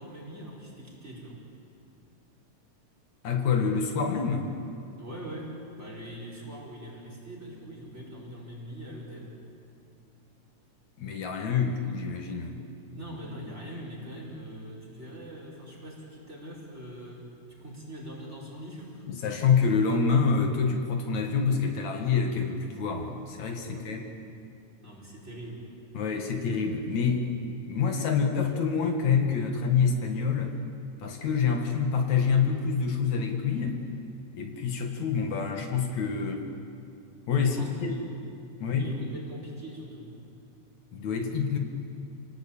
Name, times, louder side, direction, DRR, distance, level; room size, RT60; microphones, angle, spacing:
voice 1, 0.0-1.4 5.0-9.4 12.9-19.1 23.6-23.9 24.8-25.7 37.4-38.4 38.8-40.1, right 1 dB, 20° right, -2 dB, 5.2 m, -42 dB
voice 2, 3.2-4.5 11.0-12.6 19.1-24.1 25.9-27.3 27.7-30.5 31.0-33.8 34.3-36.5 37.3-38.0 38.6-38.9 40.9-41.6, left 5 dB, 70° left, 3 dB, 3.1 m, -27 dB
28.5 x 19.0 x 8.8 m, 2.6 s
omnidirectional pair, 3.4 m